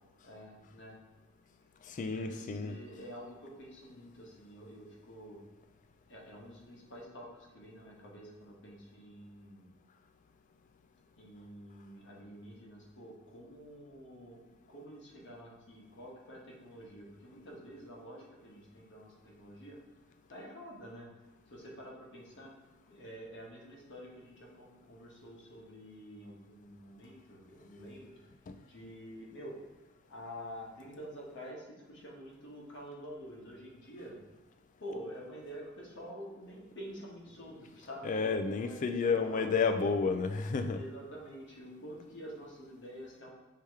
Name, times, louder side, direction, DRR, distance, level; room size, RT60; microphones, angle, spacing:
voice 1, 0.2-1.0 2.0-5.4 6.1-9.7 11.2-19.8 20.3-21.1 21.5-22.5 22.9-28.1 28.7-29.5 30.1-34.2 34.8-39.6 40.7-43.3, equal, 60° left, -3 dB, 1.1 m, -48 dB
voice 2, 1.9-2.7 28.5-28.6 38.0-40.8, left 4 dB, 40° left, 8 dB, 0.3 m, -31 dB
4.8 x 2.9 x 3.5 m, 1.2 s
head